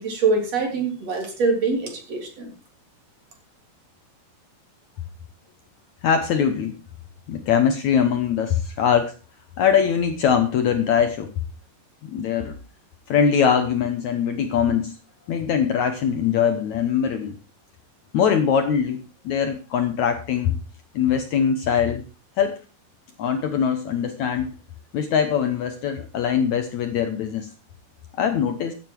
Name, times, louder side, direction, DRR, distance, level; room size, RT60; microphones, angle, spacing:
voice 1, 0.0-2.4, right 4 dB, 45° right, 2 dB, 4.2 m, -24 dB
voice 2, 6.0-6.7 7.3-9.1 9.6-11.3 12.0-12.5 13.1-15.0 15.3-17.4 18.1-20.6 21.0-22.0 22.4-22.6 23.2-24.5 24.9-27.5 28.2-28.7, left 7 dB, 65° left, 7 dB, 2.0 m, -22 dB
15.5 x 9.1 x 4.6 m, 0.34 s
omnidirectional pair, 4.2 m